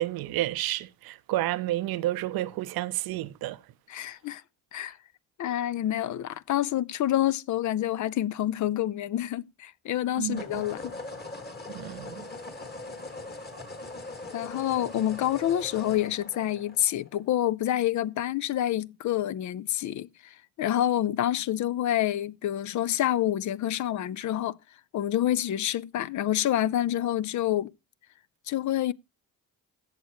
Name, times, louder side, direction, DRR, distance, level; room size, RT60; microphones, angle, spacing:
voice 1, 0.0-3.6 10.2-10.6 11.7-12.3, right 16 dB, 85° right, 0.6 m, -30 dB
voice 2, 3.9-4.4 4.7-5.0 5.4-10.9 14.3-24.6 24.9-27.7 28.5-28.9, left 12 dB, 55° left, 0.5 m, -28 dB
sound 1, 6.3-6.4 10.3-17.3, left 2 dB, 30° left, 1.9 m, -41 dB
16.0 x 6.5 x 2.9 m
cardioid pair, 90°, 35 cm